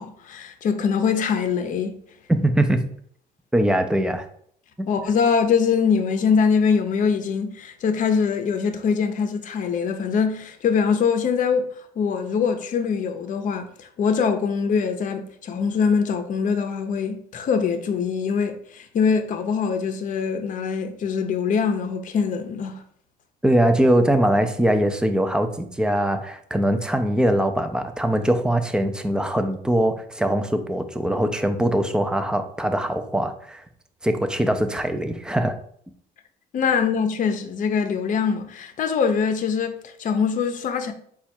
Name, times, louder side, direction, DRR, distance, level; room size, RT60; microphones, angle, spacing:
voice 1, 0.0-2.0 4.9-11.7 12.0-22.8 36.5-40.9, left 6 dB, 50° left, 0.7 m, -23 dB
voice 2, 2.3-2.8 3.5-4.3 23.4-33.6 34.0-35.6, right 1 dB, 5° right, 0.5 m, -22 dB
4.2 x 2.4 x 4.3 m
cardioid pair, 110°, 17 cm